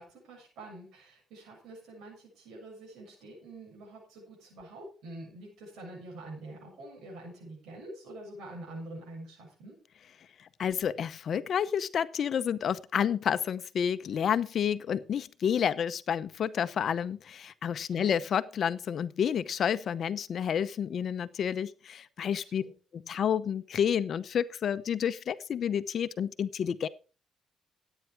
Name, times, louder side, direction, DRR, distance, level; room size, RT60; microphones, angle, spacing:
voice 1, 0.0-9.8 17.8-18.1 22.4-22.7, right 1 dB, 85° right, -1 dB, 6.9 m, -46 dB
voice 2, 10.4-22.6 22.9-26.9, left 8 dB, 60° left, 13 dB, 0.7 m, -30 dB
14.0 x 9.2 x 4.6 m, 0.37 s
cardioid pair, 90°, 0 cm